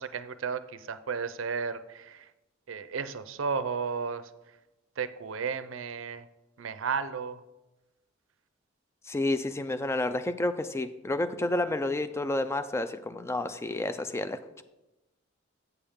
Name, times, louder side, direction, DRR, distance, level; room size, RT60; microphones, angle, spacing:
voice 1, 0.0-2.3 2.7-4.3 5.0-6.3 6.6-7.4, right 5 dB, 75° right, 13 dB, 0.5 m, -33 dB
voice 2, 9.1-14.6, left 2 dB, 15° left, 10 dB, 0.3 m, -30 dB
8.1 x 7.1 x 3.5 m, 1.0 s
head